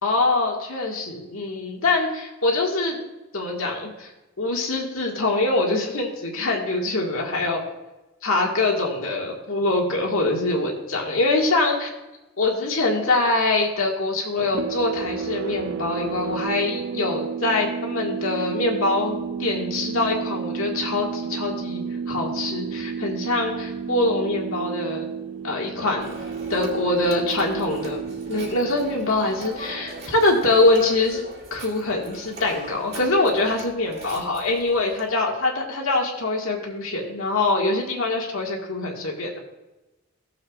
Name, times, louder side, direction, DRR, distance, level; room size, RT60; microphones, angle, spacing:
voice 1, 0.0-3.0 3.3-4.1 4.4-7.6 8.2-11.9 12.4-25.1 25.4-26.1 26.5-31.2 31.5-39.4, left 2 dB, 80° left, -1 dB, 1.9 m, -24 dB
sound 1, 14.4-30.7, right 6 dB, 70° right, 0.4 m, -32 dB
Telephone, 26.0-35.1, right 2 dB, 45° right, 2.3 m, -40 dB
16.0 x 7.2 x 2.5 m, 1.0 s
head